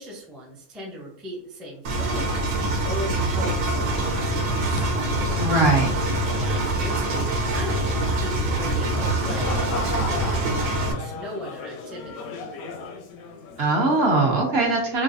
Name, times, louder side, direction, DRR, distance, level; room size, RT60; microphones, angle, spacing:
voice 1, 0.0-4.9 6.2-12.4, equal, ahead, -3 dB, 0.4 m, -38 dB
Engine, 1.8-10.9, right 2 dB, 70° right, 1.1 m, -24 dB
sound 1, 3.7-14.2, left 4 dB, 80° left, 1.0 m, -37 dB
sound 2, 4.8-9.2, left 2 dB, 55° left, 0.6 m, -40 dB
voice 2, 5.4-5.9 13.6-15.0, right 2 dB, 55° right, -1 dB, 0.8 m, -20 dB
3.9 x 2.3 x 2.5 m, 0.71 s
omnidirectional pair, 1.5 m